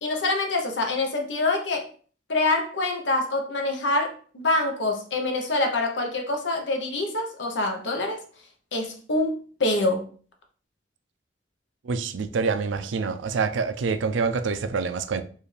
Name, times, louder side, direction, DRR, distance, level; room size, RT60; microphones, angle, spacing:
voice 1, 0.0-1.9 2.3-8.2 8.7-10.1, left 2 dB, 75° left, 0.9 m, -25 dB
voice 2, 11.8-15.2, right 5 dB, 85° right, 0.4 m, -26 dB
4.6 x 2.6 x 3.3 m
head